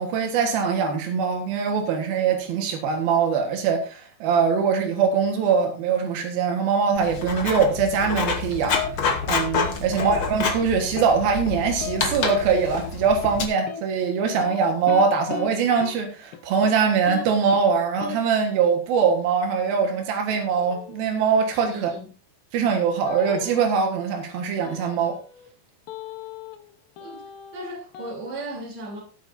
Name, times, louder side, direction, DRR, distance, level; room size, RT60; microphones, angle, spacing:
voice 1, 0.0-8.8 9.3-21.9 22.5-25.2, right 6 dB, 90° right, 3.3 m, -22 dB
Writing, 7.0-13.4, left 5 dB, 50° left, 1.9 m, -28 dB
sound 1, 8.7-8.9 9.2-9.7 10.0-10.2 10.4-10.6 11.0-11.1 11.5-12.0 12.3-12.4 12.7-12.9 13.2-13.4 13.7-13.8 14.3-15.5 15.8-16.0 16.3-16.8 17.1-17.2 17.5-17.7 18.0-18.2 20.3-21.1 23.1-23.8 24.6-25.5 25.9-26.7 27.0-28.1, left 7 dB, 75° left, 2.7 m, -35 dB
voice 2, 21.7-22.1 27.0-29.0, right 1 dB, 50° right, 4.5 m, -36 dB
18.0 x 8.6 x 2.7 m
omnidirectional pair, 4.1 m